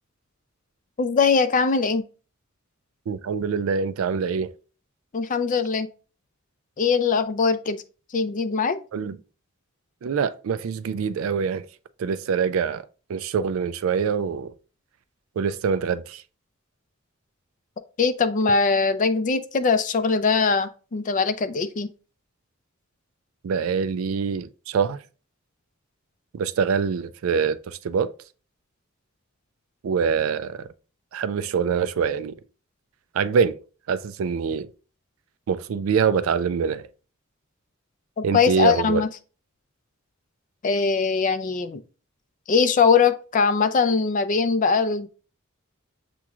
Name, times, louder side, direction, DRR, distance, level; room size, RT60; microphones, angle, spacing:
voice 1, 1.0-2.0 5.1-5.9 6.8-7.8 8.1-8.8 18.0-21.9 38.2-39.1 40.6-41.8 42.5-45.1, left 5 dB, 40° left, 0.4 m, -21 dB
voice 2, 3.1-4.5 8.9-9.2 10.0-11.7 12.0-14.5 15.4-16.2 23.4-25.0 26.3-28.1 29.8-30.7 31.1-32.4 33.1-33.6 33.9-34.7 35.5-36.9 38.2-39.0, right 6 dB, 75° right, 0.3 m, -24 dB
7.0 x 3.0 x 2.4 m
head